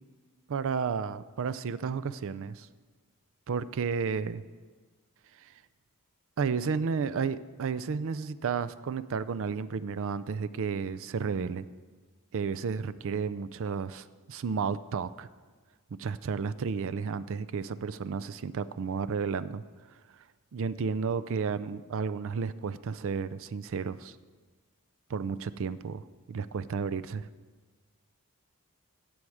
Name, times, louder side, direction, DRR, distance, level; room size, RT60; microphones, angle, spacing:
voice 1, 0.5-2.7 3.5-4.4 5.4-5.5 6.4-11.7 12.3-15.3 16.0-19.6 20.5-24.2 25.1-27.3, right 5 dB, 60° right, 15 dB, 0.4 m, -32 dB
15.5 x 7.8 x 4.8 m, 1.4 s
head